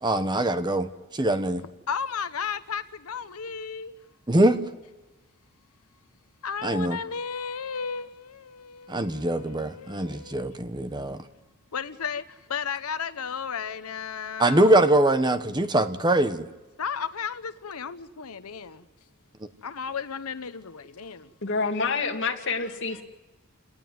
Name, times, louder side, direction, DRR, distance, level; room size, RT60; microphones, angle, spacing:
voice 1, 0.0-1.6 4.3-4.6 6.6-7.0 8.9-11.2 14.4-16.5, right 1 dB, 20° right, 1.0 m, -23 dB
voice 2, 1.6-3.9 6.4-10.6 11.7-12.2 12.5-14.9 16.8-18.8 19.6-21.3, left 6 dB, 85° left, 0.8 m, -34 dB
voice 3, 21.4-23.0, left 4 dB, 55° left, 2.5 m, -27 dB
28.5 x 18.5 x 9.5 m
head